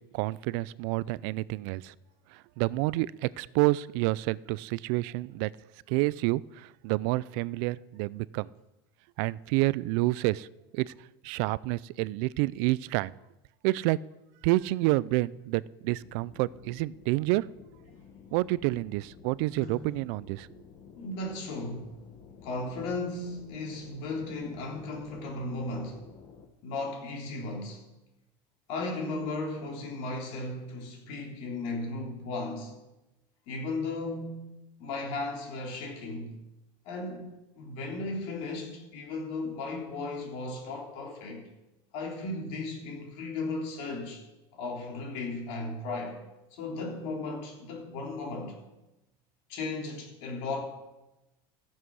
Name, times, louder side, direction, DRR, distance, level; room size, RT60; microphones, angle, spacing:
voice 1, 0.1-1.9 2.3-5.5 5.9-8.5 9.2-10.5 10.7-10.9 11.2-13.1 13.6-14.0 14.4-17.5 18.3-20.5, right 20 dB, 55° right, 0.4 m, -28 dB
sound 1, 16.0-26.5, left 6 dB, 35° left, 1.2 m, -52 dB
voice 2, 19.6-19.9 20.9-22.0 22.4-26.1 26.6-27.9 28.7-32.8 33.5-36.4 36.8-41.5 41.9-44.2 44.5-46.2 46.5-48.6 49.5-50.6, left 2 dB, 55° left, 3.4 m, -36 dB
14.0 x 7.5 x 6.3 m
supercardioid pair, 150°, 12 cm